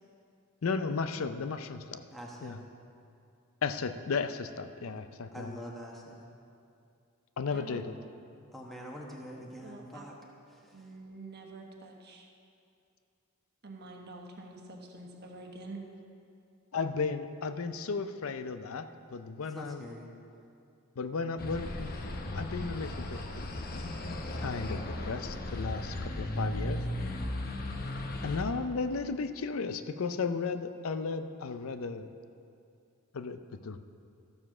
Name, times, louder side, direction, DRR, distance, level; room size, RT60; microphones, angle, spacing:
voice 1, 0.6-2.0 2.4-2.6 3.6-5.5 7.4-8.0 16.7-19.9 21.0-21.9 22.3-23.2 24.4-26.8 28.2-32.1 33.1-33.8, left 4 dB, 65° left, 10 dB, 0.5 m, -34 dB
voice 2, 2.1-2.6 5.3-6.2 8.5-10.1 10.5-10.9 19.5-20.1, equal, ahead, -3 dB, 1.2 m, -45 dB
voice 3, 7.5-7.8 9.6-10.0 10.7-12.3 13.6-15.8 24.7-24.8, right 2 dB, 50° right, 1 dB, 1.3 m, -46 dB
sound 1, 21.4-28.4, left 1 dB, 45° left, 0.9 m, -36 dB
13.0 x 7.2 x 6.0 m, 2.5 s
head